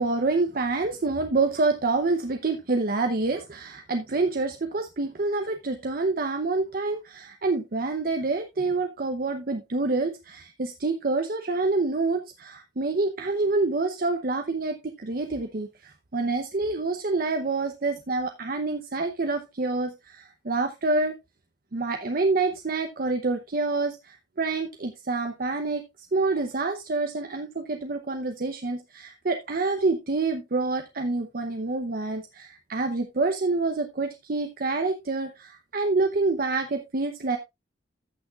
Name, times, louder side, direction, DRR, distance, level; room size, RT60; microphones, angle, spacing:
voice 1, 0.0-21.1 21.7-25.8 26.1-37.4, right 3 dB, 55° right, 6 dB, 0.8 m, -27 dB
14.0 x 6.3 x 2.4 m, 0.21 s
head